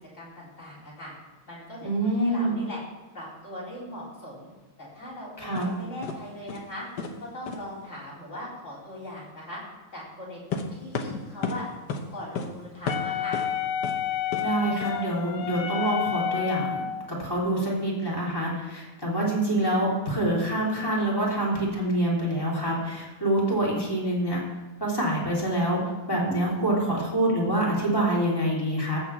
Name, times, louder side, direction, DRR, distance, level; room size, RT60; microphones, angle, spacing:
voice 1, 0.1-1.1 1.5-2.8 3.1-4.5 4.8-6.9 7.3-9.6 9.9-11.6 12.1-13.4, left 1 dB, 35° left, -7 dB, 4.4 m, -40 dB
voice 2, 1.8-2.5 5.4-5.7 14.4-24.4 24.8-25.8 26.1-29.0, right 1 dB, 10° left, -5 dB, 3.1 m, -26 dB
sound 1, 5.5-5.7 6.0-6.2 6.5-6.7 7.0-7.2 7.5-7.6 10.5-11.6 11.9-12.1 12.3-12.5 12.9-13.5 13.8-14.0 14.3-14.5 14.8-14.9, left 4 dB, 60° left, 1.4 m, -31 dB
Wind instrument woodwind instrument, 12.9-17.1, left 9 dB, 90° left, 1.7 m, -30 dB
14.5 x 4.8 x 6.9 m, 1.2 s
omnidirectional pair, 2.3 m